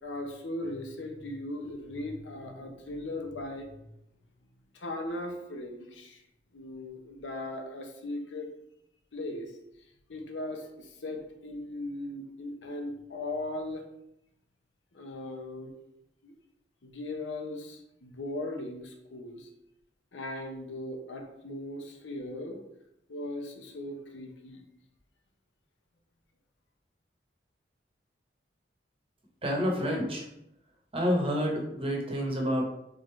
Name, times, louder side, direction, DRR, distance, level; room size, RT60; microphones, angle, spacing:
voice 1, 0.0-3.9 4.7-6.2 6.5-8.5 9.1-9.5 10.1-13.8 14.9-15.7 16.2-16.3 16.8-19.5 20.1-22.6 23.1-24.6, left 1 dB, 85° left, 3 dB, 0.7 m, -38 dB
voice 2, 29.4-30.2 30.9-32.6, equal, 30° right, 0 dB, 0.9 m, -28 dB
3.7 x 3.5 x 3.1 m, 0.81 s
head